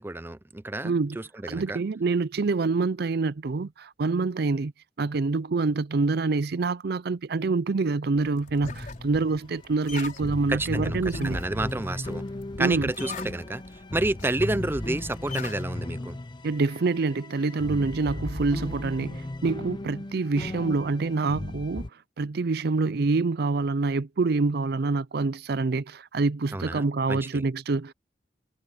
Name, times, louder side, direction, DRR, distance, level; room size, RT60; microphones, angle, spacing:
voice 1, 0.0-1.8 10.5-12.2 12.6-16.2 26.5-27.4, right 2 dB, 15° right, 0.5 m, -30 dB
voice 2, 0.8-1.2 1.5-4.7 5.0-11.4 12.6-12.9 16.4-21.9 22.2-27.9, right 3 dB, 60° right, 0.5 m, -26 dB
sound 1, 8.1-15.6, left 3 dB, 50° left, 4.9 m, -42 dB
sound 2, 8.6-9.6 9.9-10.0 10.1-21.9, left 1 dB, 25° left, 0.7 m, -36 dB
head